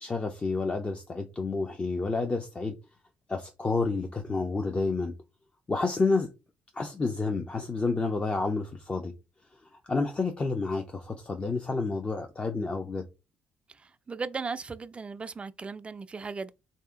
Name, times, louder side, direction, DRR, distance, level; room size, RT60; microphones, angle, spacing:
voice 1, 0.0-2.7 3.3-5.1 5.7-6.3 6.7-9.1 9.9-13.0, left 3 dB, 25° left, 0.6 m, -29 dB
voice 2, 14.1-16.5, right 4 dB, 25° right, 0.4 m, -36 dB
3.3 x 2.7 x 3.7 m
cardioid pair, 85°, 4 cm